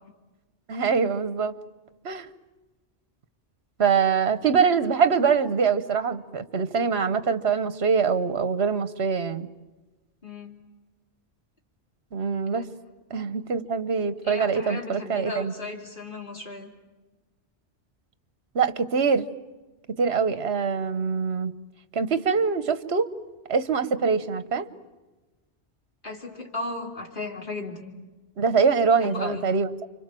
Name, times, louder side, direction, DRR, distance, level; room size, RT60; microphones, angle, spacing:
voice 1, 0.7-1.5 2.0-2.3 3.8-9.5 12.1-12.7 13.1-15.5 18.5-19.3 20.0-21.5 21.9-23.1 23.5-24.7 28.4-29.9, right 5 dB, 65° right, 13 dB, 1.3 m, -24 dB
voice 2, 10.2-10.5 12.5-12.6 13.2-13.3 14.2-16.7 26.0-27.9 29.0-29.5, left 3 dB, 50° left, 1 dB, 3.5 m, -35 dB
29.5 x 25.0 x 7.6 m, 1.2 s
omnidirectional pair, 1.2 m